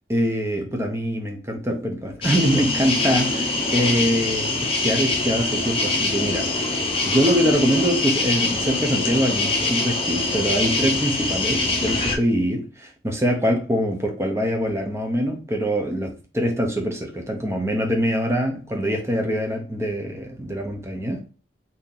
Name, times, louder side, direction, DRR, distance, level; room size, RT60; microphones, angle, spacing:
voice 1, 0.1-6.5 7.0-21.2, equal, 15° right, 0.6 m, -24 dB
sound 1, 2.2-12.2, left 2 dB, 30° left, 0.6 m, -24 dB
2.8 x 2.7 x 3.7 m
head